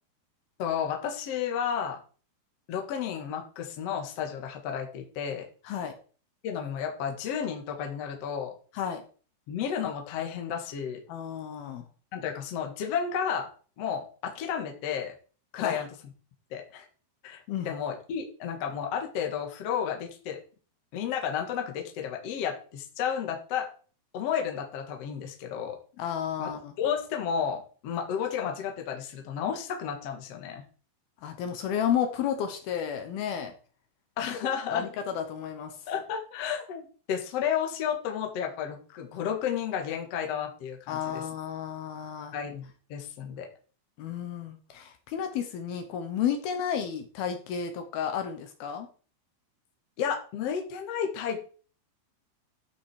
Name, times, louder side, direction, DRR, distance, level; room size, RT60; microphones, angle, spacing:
voice 1, 0.6-2.0 2.7-5.5 6.4-8.5 9.5-11.0 12.1-13.5 13.8-15.1 15.5-15.9 16.5-16.9 17.2-20.4 20.9-23.7 24.1-25.8 26.4-30.6 34.2-34.9 35.9-41.2 42.3-43.5 50.0-51.6, left 8 dB, 55° left, 3 dB, 2.0 m, -32 dB
voice 2, 11.1-11.9 15.5-15.8 17.5-17.7 26.0-26.7 31.2-33.5 34.3-34.4 34.7-35.7 40.9-42.3 44.0-48.9, left 8 dB, 70° left, 6 dB, 2.8 m, -32 dB
12.5 x 6.0 x 4.8 m, 0.39 s
omnidirectional pair, 4.9 m